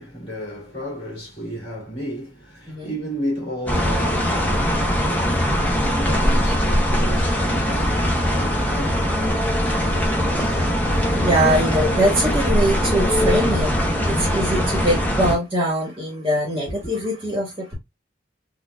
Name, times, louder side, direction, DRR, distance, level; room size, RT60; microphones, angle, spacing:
voice 1, 0.0-11.1, equal, 30° left, 2.2 m, -33 dB
voice 2, 2.7-3.0 11.1-17.7, right 1 dB, 20° right, 1.3 m, -23 dB
sound 1, 3.7-15.3, equal, 10° left, 0.7 m, -21 dB
4.3 x 2.4 x 2.3 m
head